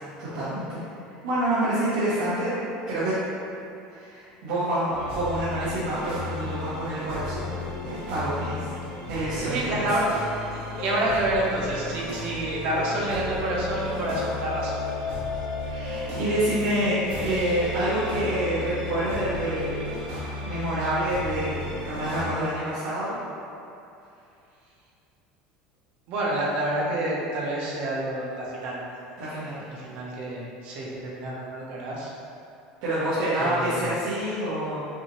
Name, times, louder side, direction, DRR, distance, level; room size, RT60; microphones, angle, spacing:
voice 1, 0.2-0.8 1.2-2.6 2.9-3.2 3.9-8.7 9.1-9.9 10.7-10.8 15.6-19.9 20.4-23.2 29.2-29.6 32.8-34.9, right 1 dB, 90° right, -13 dB, 1.3 m, -27 dB
sound 1, 4.9-22.3, left 1 dB, 65° right, 1.4 m, -35 dB
sound 2, 7.2-20.1, left 5 dB, 55° left, 0.3 m, -37 dB
voice 2, 9.4-10.0 10.5-14.8 26.1-28.8 29.7-32.1 33.3-34.0, right 1 dB, 50° right, -4 dB, 0.9 m, -28 dB
6.0 x 2.8 x 3.1 m, 2.6 s
cardioid pair, 175°, 3 cm